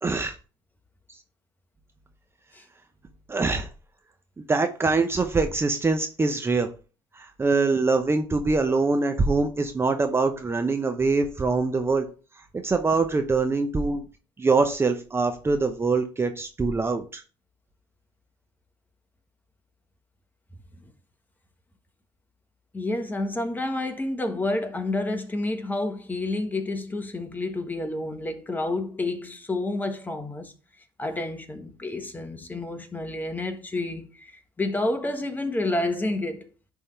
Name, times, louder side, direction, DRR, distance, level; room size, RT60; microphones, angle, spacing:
voice 1, 0.0-0.4 3.3-3.7 4.4-6.7 7.1-12.0 12.5-14.0 14.4-17.2, right 3 dB, 20° right, 0.8 m, -24 dB
voice 2, 22.7-30.5 31.0-36.5, left 2 dB, 15° left, 1.4 m, -29 dB
11.0 x 3.6 x 3.3 m
hypercardioid pair, 75°, 12 cm